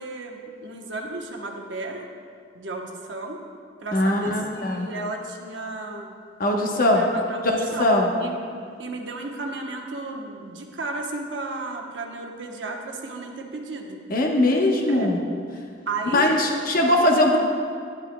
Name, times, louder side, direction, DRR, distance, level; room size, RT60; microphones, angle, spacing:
voice 1, 0.0-2.1 2.5-3.4 3.8-6.1 6.4-7.9 8.2-14.0 14.9-15.1 15.9-16.9, right 2 dB, 80° right, 1 dB, 1.0 m, -34 dB
voice 2, 3.9-4.9 6.4-7.0 7.4-8.1 14.1-15.2 16.1-17.4, left 1 dB, 50° left, 0 dB, 1.0 m, -20 dB
10.5 x 10.5 x 2.2 m, 2.2 s
head